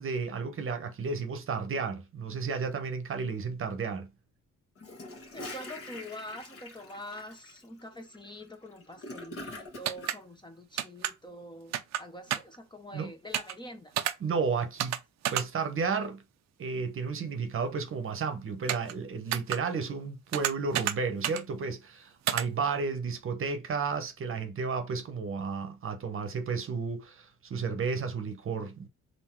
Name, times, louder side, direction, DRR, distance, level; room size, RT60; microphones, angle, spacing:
voice 1, 0.0-4.1 12.9-13.1 14.2-15.0 15.3-16.2 16.6-28.9, right 5 dB, 45° right, 0.9 m, -32 dB
Gurgling / Toilet flush, 4.8-10.1, left 2 dB, 50° left, 1.6 m, -44 dB
voice 2, 5.3-13.9, equal, 15° left, 0.8 m, -45 dB
Hunting and pecking on an old computer keyboard, 9.8-10.2 10.8-11.1 11.7-12.0 12.3-12.6 13.3-13.5 14.0-14.1 14.8-15.0 15.2-15.4 18.7-18.9 19.3-19.6 20.3-20.9 21.2-21.4 22.3-22.4, right 11 dB, 65° right, 0.5 m, -29 dB
3.7 x 2.6 x 4.4 m
cardioid pair, 90°, 30 cm